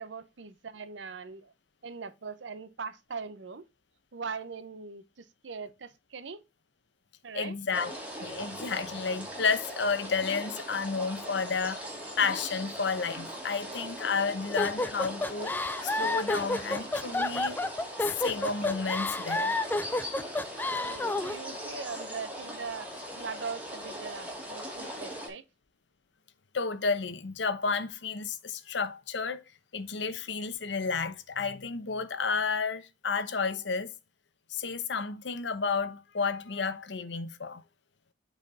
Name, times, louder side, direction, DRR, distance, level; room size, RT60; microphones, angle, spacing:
voice 1, 0.0-1.5 1.8-3.6 4.1-6.4 7.2-7.6 20.6-25.4, right 5 dB, 75° right, 0.7 m, -41 dB
voice 2, 7.3-7.9 8.2-11.8 12.2-15.5 15.8-17.6 18.0-19.5 26.5-29.4 29.7-33.9 34.5-37.6, left 5 dB, 70° left, 0.8 m, -31 dB
sound 1, 7.7-25.3, equal, 10° right, 2.4 m, -40 dB
sound 2, 14.6-21.4, left 2 dB, 10° left, 0.3 m, -30 dB
8.1 x 4.3 x 3.4 m
head